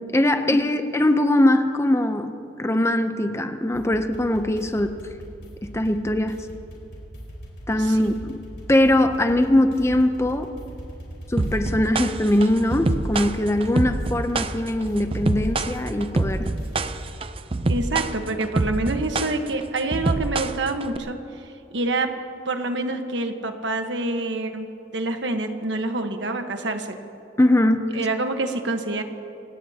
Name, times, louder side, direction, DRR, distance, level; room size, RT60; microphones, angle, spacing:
voice 1, 0.1-2.3 2.6-4.9 5.6-6.4 7.7-8.1 8.7-10.5 11.3-16.5 27.4-27.8, left 1 dB, 15° left, 8 dB, 0.7 m, -21 dB
sound 1, 3.7-17.1, right 1 dB, 65° left, 4.3 m, -39 dB
voice 2, 7.8-8.1 17.7-21.2 21.7-22.1 22.4-24.7 24.9-27.0 27.9-29.0, right 2 dB, 85° right, 6 dB, 1.3 m, -26 dB
sound 2, 11.4-21.0, right 2 dB, 30° right, 0.5 m, -25 dB
27.0 x 17.5 x 2.9 m, 2.8 s
head